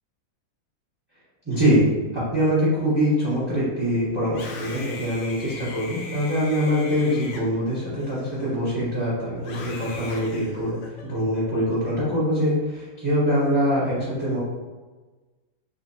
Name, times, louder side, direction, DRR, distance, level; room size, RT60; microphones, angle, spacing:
voice 1, 1.4-1.9 2.1-14.4, equal, 20° right, -9 dB, 0.6 m, -23 dB
Screaming, 4.2-8.8 9.4-11.1, left 3 dB, 70° left, 1.2 m, -40 dB
4.1 x 2.9 x 2.7 m, 1.3 s
omnidirectional pair, 2.3 m